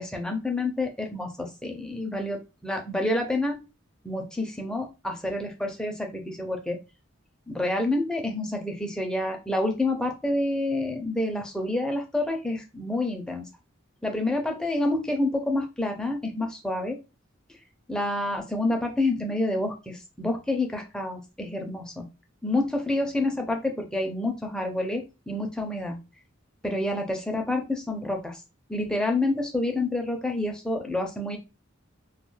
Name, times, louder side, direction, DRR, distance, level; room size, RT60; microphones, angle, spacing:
voice 1, 0.0-3.6 4.0-6.8 7.5-13.4 14.0-17.0 17.9-22.1 22.4-26.0 26.6-28.4 28.7-31.4, left 2 dB, 5° left, 2 dB, 0.4 m, -28 dB
2.3 x 2.3 x 3.1 m, 0.28 s
head